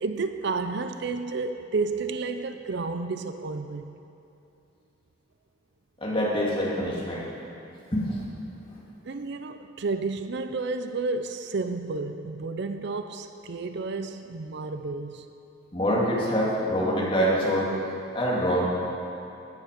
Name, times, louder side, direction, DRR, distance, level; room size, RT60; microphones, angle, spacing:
voice 1, 0.0-3.9 9.0-15.3, right 3 dB, 55° right, 9 dB, 0.5 m, -31 dB
voice 2, 6.0-7.2 7.9-8.2 8.7-8.8 15.7-17.7 18.1-18.7, equal, 25° left, -5 dB, 2.3 m, -25 dB
15.0 x 9.8 x 5.2 m, 2.8 s
head